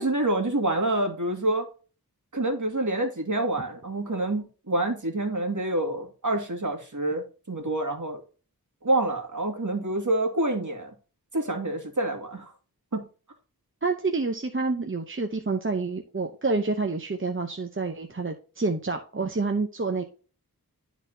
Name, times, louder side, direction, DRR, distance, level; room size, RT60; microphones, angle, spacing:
voice 1, 0.0-1.7 2.3-8.2 8.8-10.9 11.3-12.5 12.9-13.0, right 1 dB, 50° right, 2.0 m, -27 dB
voice 2, 13.8-20.0, right 3 dB, 35° right, 0.8 m, -28 dB
12.0 x 4.1 x 2.7 m
wide cardioid pair, 55°, 37 cm